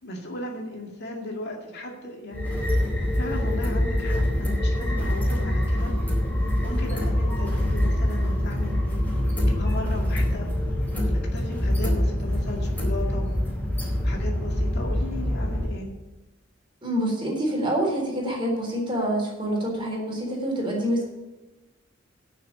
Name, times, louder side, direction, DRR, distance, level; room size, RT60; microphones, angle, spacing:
voice 1, 0.0-2.5 3.2-5.9 6.6-9.0 9.4-10.5 11.0-13.3 14.0-15.9, left 1 dB, 55° left, 1 dB, 2.1 m, -36 dB
sound 1, 2.3-15.7, left 1 dB, 10° left, 3.9 m, -25 dB
voice 2, 16.8-21.1, right 1 dB, 25° right, -2 dB, 3.9 m, -26 dB
10.5 x 6.6 x 8.5 m, 1.0 s
head